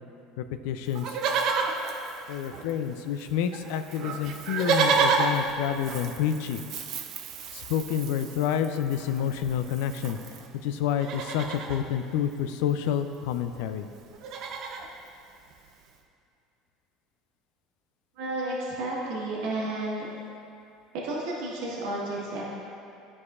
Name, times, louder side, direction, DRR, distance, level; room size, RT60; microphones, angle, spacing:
voice 1, 0.4-1.2 2.3-6.6 7.5-10.2 10.6-13.9, left 9 dB, 80° left, 9 dB, 0.3 m, -29 dB
Livestock farm animals working animals, 0.9-2.9 3.2-3.3 3.5-10.5 10.9-11.8 13.0-13.1 13.3-13.6 13.9-14.9 15.5-15.6, right 5 dB, 55° right, 0.5 m, -30 dB
voice 2, 18.2-20.1 20.9-22.4, right 2 dB, 75° right, -5 dB, 1.3 m, -32 dB
10.5 x 4.8 x 2.4 m, 2.5 s
supercardioid pair, 125°, 0 cm